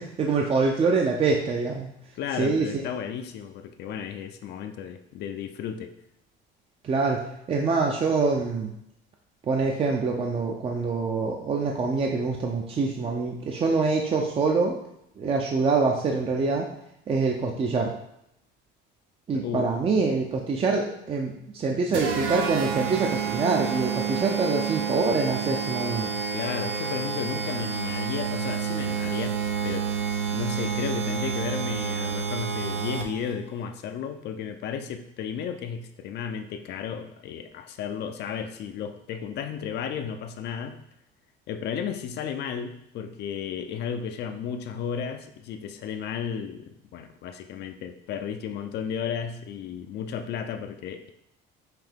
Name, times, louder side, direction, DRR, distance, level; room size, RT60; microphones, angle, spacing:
voice 1, 0.0-1.9 2.4-2.7 6.8-8.7 9.5-14.8 15.2-16.6 17.1-17.9 19.3-26.1, right 4 dB, 30° right, 1 dB, 0.5 m, -25 dB
voice 2, 2.1-5.9 19.3-19.7 26.3-29.4 29.6-29.9 30.3-40.7 41.5-51.1, left 7 dB, 55° left, 7 dB, 0.5 m, -33 dB
sound 1, 21.9-33.3, right 6 dB, 75° right, 0.7 m, -29 dB
5.7 x 2.7 x 3.5 m, 0.79 s
cardioid pair, 125°, 21 cm